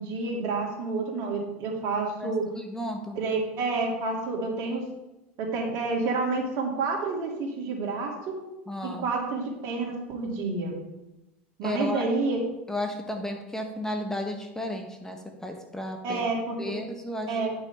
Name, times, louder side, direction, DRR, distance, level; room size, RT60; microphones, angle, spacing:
voice 1, 0.0-2.4 3.2-4.9 5.4-8.4 8.8-10.7 11.6-12.4 16.0-16.8 17.3-17.5, right 3 dB, 55° right, 0 dB, 2.4 m, -29 dB
voice 2, 2.2-3.2 8.7-9.1 11.6-12.1 12.7-16.2 16.6-17.4, left 1 dB, 10° left, 4 dB, 1.0 m, -33 dB
10.5 x 6.1 x 3.5 m, 0.98 s
hypercardioid pair, 95°, 6 cm